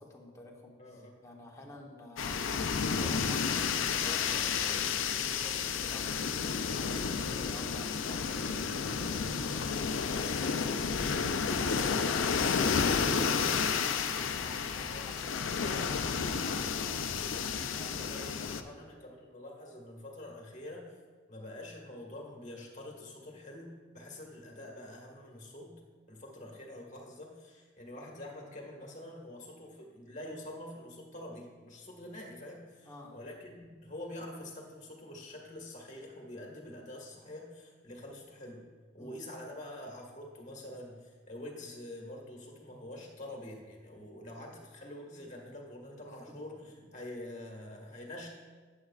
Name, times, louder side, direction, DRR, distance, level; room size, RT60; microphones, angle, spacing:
voice 1, 0.0-11.1 11.6-17.0 17.7-18.9 32.8-33.3 39.0-39.2 46.0-46.4, left 1 dB, 15° left, -1 dB, 1.0 m, -51 dB
voice 2, 0.8-1.2 14.9-15.3 17.9-21.0 21.3-25.8 26.1-38.6 38.9-48.3, left 1 dB, 35° left, 0 dB, 1.6 m, -46 dB
sound 1, 2.2-18.6, left 6 dB, 80° left, 0.5 m, -31 dB
11.0 x 9.3 x 2.4 m, 1.5 s
head